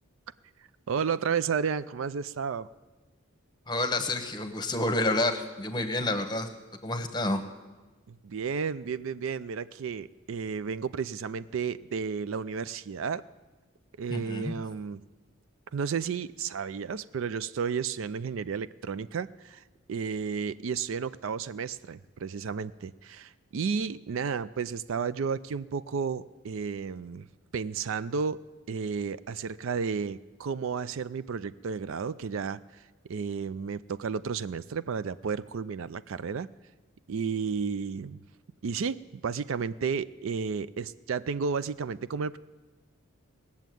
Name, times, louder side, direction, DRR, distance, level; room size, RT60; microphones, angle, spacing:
voice 1, 0.9-2.7 8.1-13.2 14.0-15.0 15.7-19.6 19.9-27.3 27.5-28.4 28.7-32.6 33.1-36.5 37.1-38.2 38.6-42.4, right 6 dB, 65° right, 15 dB, 0.4 m, -32 dB
voice 2, 3.7-6.5 6.8-7.4 14.1-14.5, left 2 dB, 20° left, 8 dB, 1.0 m, -29 dB
19.0 x 7.2 x 9.1 m, 1.2 s
head